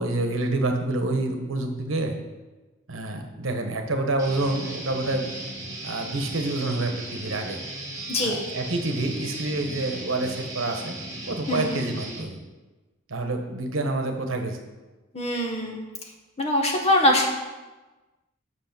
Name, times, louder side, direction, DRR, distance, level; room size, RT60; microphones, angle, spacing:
voice 1, 0.0-2.1 2.9-5.3 5.8-7.6 8.2-10.9 11.3-12.4 13.1-14.6, right 2 dB, 70° right, 5 dB, 1.1 m, -27 dB
Guitar, 4.2-12.2, right 1 dB, 15° right, 1.8 m, -36 dB
voice 2, 8.1-8.4 11.5-11.8 15.1-15.8 16.4-17.3, left 1 dB, 30° left, 1 dB, 1.3 m, -23 dB
8.2 x 6.2 x 6.0 m, 1.2 s
head